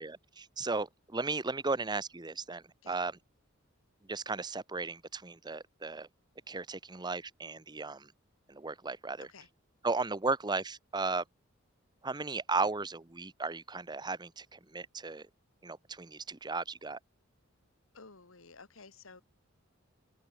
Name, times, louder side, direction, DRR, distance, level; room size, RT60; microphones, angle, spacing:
voice 1, 0.0-3.1 4.0-6.1 6.5-8.1 8.5-9.3 9.8-11.2 12.0-15.3 15.6-17.0, right 3 dB, 20° right, 0.9 m, -35 dB
voice 2, 17.9-19.2, left 4 dB, 90° left, 2.4 m, -53 dB
head